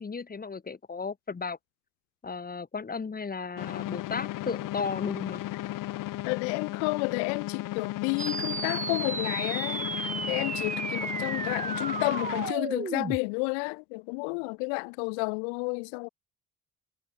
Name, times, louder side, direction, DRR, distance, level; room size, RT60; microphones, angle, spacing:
voice 1, 0.0-1.6 2.2-5.4, left 5 dB, 25° left, 1.6 m, -35 dB
sound 1, 3.6-12.5, left 16 dB, 70° left, 1.8 m, -35 dB
voice 2, 6.3-16.1, left 40 dB or more, 90° left, 0.8 m, -31 dB
sound 2, 8.2-13.2, right 5 dB, 25° right, 1.1 m, -34 dB
supercardioid pair, 65°, 33 cm